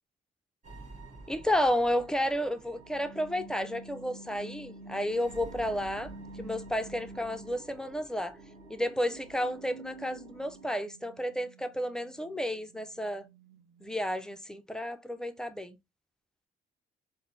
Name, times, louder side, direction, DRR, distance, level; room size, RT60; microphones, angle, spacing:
sound 1, 0.6-10.7, right 2 dB, 35° right, 1.2 m, -50 dB
voice 1, 1.3-6.1 6.4-8.4 8.7-13.3 13.8-15.8, equal, 5° left, 0.4 m, -32 dB
sound 2, 2.7-8.0 8.3-14.6, right 2 dB, 75° right, 0.7 m, -50 dB
4.1 x 2.0 x 2.5 m
cardioid pair, 90°, 20 cm